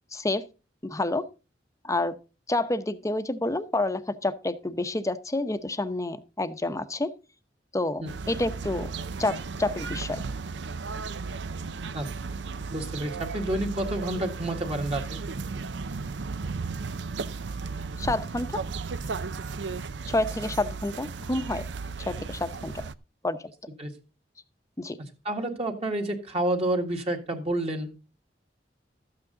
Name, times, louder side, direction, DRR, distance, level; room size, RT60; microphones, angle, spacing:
voice 1, 0.1-0.5 0.8-1.3 1.8-2.2 2.5-7.1 7.7-8.9 9.2-10.2 18.0-18.5 20.1-21.7 22.1-22.8 23.2-23.5 24.8-25.0, left 2 dB, 20° left, 0.8 m, -28 dB
sound 1, 8.1-22.9, right 4 dB, 75° right, 0.6 m, -35 dB
voice 2, 12.7-15.2 23.8-23.9 25.2-27.9, right 1 dB, 35° right, 1.8 m, -29 dB
13.0 x 8.5 x 3.8 m
head